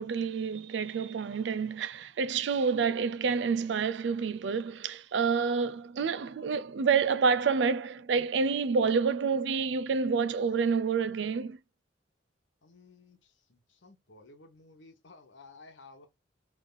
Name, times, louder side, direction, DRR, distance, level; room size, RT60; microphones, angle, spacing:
voice 1, 0.0-11.6, right 5 dB, 70° right, 0.4 m, -28 dB
voice 2, 12.6-16.1, left 3 dB, 80° left, 1.2 m, -55 dB
3.5 x 3.2 x 3.9 m
head